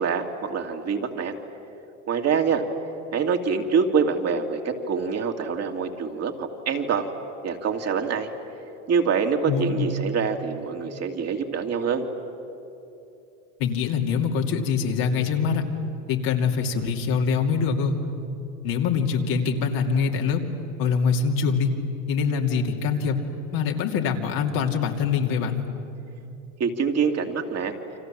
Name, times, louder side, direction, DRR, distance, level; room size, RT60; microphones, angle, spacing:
voice 1, 0.0-1.3 2.1-2.6 3.1-7.1 7.4-8.3 8.9-12.0 26.6-27.7, right 6 dB, 40° right, 3 dB, 2.6 m, -25 dB
voice 2, 9.5-9.9 13.6-15.6 16.1-18.0 18.6-20.4 20.8-21.7 22.1-23.2 23.5-25.6, left 6 dB, 60° left, 2 dB, 2.9 m, -24 dB
29.5 x 25.5 x 7.6 m, 2.8 s
hypercardioid pair, 95°, 40 cm